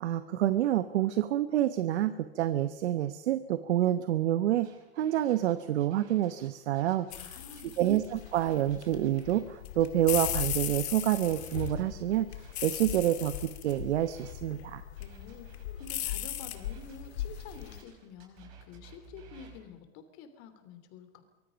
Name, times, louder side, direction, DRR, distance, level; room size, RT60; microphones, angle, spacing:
voice 1, 0.0-4.7 5.0-7.4 7.8-14.8, right 12 dB, 75° right, 11 dB, 1.1 m, -28 dB
sound 1, 4.6-9.4 9.8-14.3 15.0-19.6, right 6 dB, 40° right, 6.0 m, -58 dB
sound 2, 7.1-17.8, left 11 dB, 70° left, 2.5 m, -37 dB
voice 2, 7.2-7.8 15.0-21.2, left 6 dB, 40° left, 9 dB, 3.1 m, -49 dB
24.0 x 23.0 x 5.3 m, 1.1 s
supercardioid pair, 155°, 33 cm